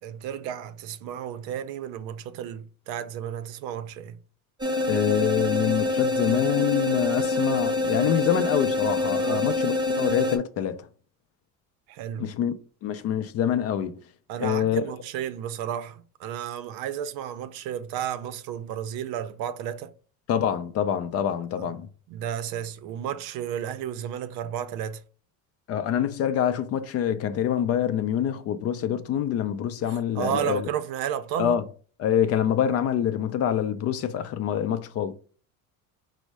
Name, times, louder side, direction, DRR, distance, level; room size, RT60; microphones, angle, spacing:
voice 1, 0.0-4.2 9.2-9.5 11.9-12.3 14.3-19.9 21.5-21.7 22.1-25.0 29.9-31.6, right 9 dB, 70° right, 0.6 m, -33 dB
sound 1, 4.6-10.4, left 2 dB, 10° right, 0.7 m, -26 dB
voice 2, 4.9-10.9 12.2-12.5 12.8-14.0 14.4-14.9 20.3-21.9 25.7-30.7 31.4-31.6 32.0-35.1, left 9 dB, 45° left, 0.4 m, -26 dB
5.2 x 2.1 x 4.7 m
cardioid pair, 155°, 36 cm